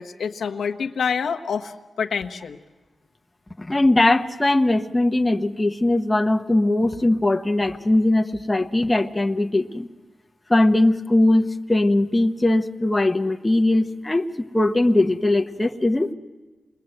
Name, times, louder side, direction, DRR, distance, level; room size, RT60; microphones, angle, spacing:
voice 1, 0.0-2.6, left 6 dB, 85° left, 4 dB, 1.1 m, -27 dB
voice 2, 3.6-9.9 10.5-16.1, left 1 dB, 15° left, 4 dB, 1.1 m, -20 dB
28.0 x 21.5 x 8.0 m, 1.2 s
wide cardioid pair, 125°, 0 cm